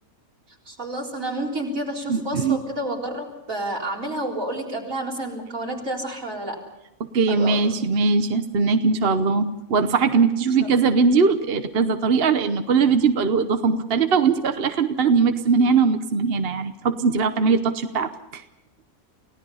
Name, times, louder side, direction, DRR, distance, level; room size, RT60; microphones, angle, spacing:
voice 1, 0.7-6.6 7.3-7.8, right 1 dB, 75° right, -2 dB, 4.6 m, -30 dB
voice 2, 2.1-2.6 7.1-18.4, right 5 dB, 50° right, 8 dB, 1.0 m, -20 dB
29.0 x 17.0 x 5.6 m, 0.91 s
omnidirectional pair, 1.4 m